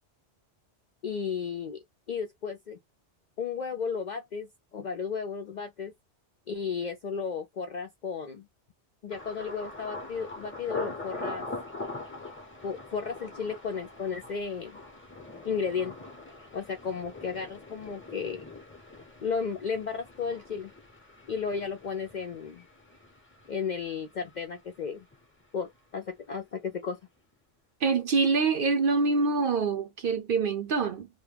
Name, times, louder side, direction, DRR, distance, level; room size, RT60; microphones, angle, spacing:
voice 1, 1.0-1.8 2.1-2.8 3.4-5.9 6.5-8.5 9.0-11.5 12.6-14.8 15.4-16.0 16.5-18.4 19.2-20.7 21.3-22.6 23.5-25.0 25.5-27.0, left 6 dB, 60° left, 0.5 m, -34 dB
Thunder, 9.1-24.9 25.1-25.8 26.2-26.4, left 2 dB, 15° left, 0.6 m, -43 dB
voice 2, 27.8-31.1, right 4 dB, 60° right, 0.6 m, -25 dB
2.2 x 2.1 x 3.2 m
omnidirectional pair, 1.2 m